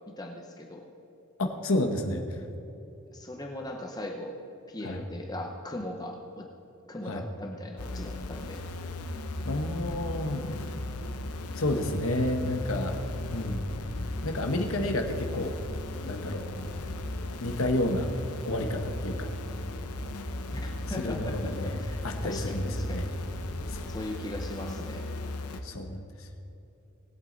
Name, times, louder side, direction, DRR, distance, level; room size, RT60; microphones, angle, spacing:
voice 1, 0.1-0.8 3.1-4.4 4.7-6.5 6.9-8.6 20.5-23.1 23.9-25.1, left 1 dB, 15° left, 1 dB, 0.8 m, -39 dB
voice 2, 1.4-2.2 4.8-5.0 7.1-7.2 9.4-10.5 11.5-13.0 13.3-13.7 14.2-15.5 16.0-16.4 17.4-18.1 18.4-19.3 21.0-23.0 23.7-23.8 25.6-26.3, left 1 dB, 65° left, 5 dB, 1.2 m, -30 dB
sound 1, 7.8-25.6, left 2 dB, 85° left, 0.9 m, -36 dB
20.0 x 8.3 x 4.0 m, 2.9 s
head